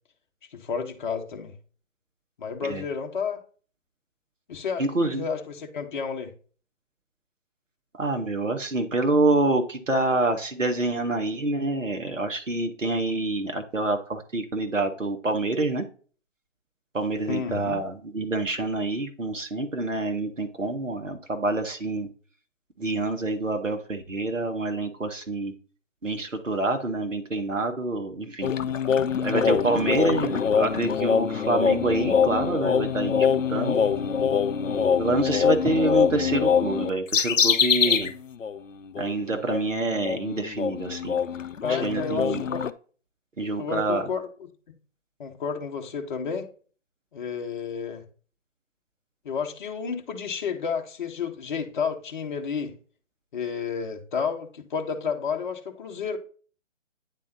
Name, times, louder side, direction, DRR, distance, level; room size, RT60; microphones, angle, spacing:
voice 1, 0.5-1.5 2.4-3.4 4.5-6.3 17.3-17.8 33.6-34.3 41.6-42.6 43.6-44.5 45.2-46.5 47.1-48.0 49.2-52.7 53.3-56.2, left 6 dB, 40° left, 1.0 m, -31 dB
voice 2, 4.8-5.2 8.0-15.8 16.9-22.1 22.8-25.5 26.0-28.5 29.2-33.8 35.0-38.1 39.0-41.2 41.7-42.4 43.4-44.1, right 2 dB, 90° right, 1.1 m, -27 dB
sound 1, 28.4-38.1 38.4-38.6 39.0-42.7, left 7 dB, 85° left, 0.6 m, -24 dB
9.8 x 3.8 x 2.6 m
figure-of-eight pair, 140°, 37 cm